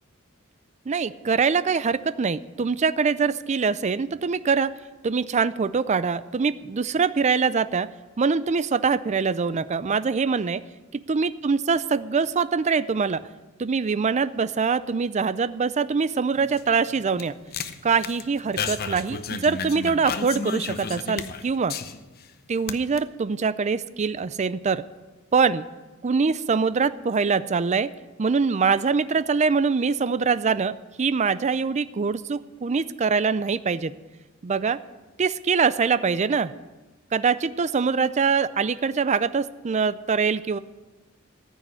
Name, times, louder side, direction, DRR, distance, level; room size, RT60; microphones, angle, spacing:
voice 1, 0.9-4.7 5.0-7.9 8.2-10.6 10.9-13.2 13.6-17.3 17.8-21.8 22.5-24.8 25.3-25.7 26.0-27.9 28.2-33.9 34.4-34.8 35.2-36.5 37.1-40.6, right 5 dB, 35° right, 15 dB, 0.4 m, -23 dB
sound 1, 16.3-22.3 22.6-23.0, left 5 dB, 50° left, 0.8 m, -33 dB
14.0 x 6.4 x 9.5 m, 1.2 s
head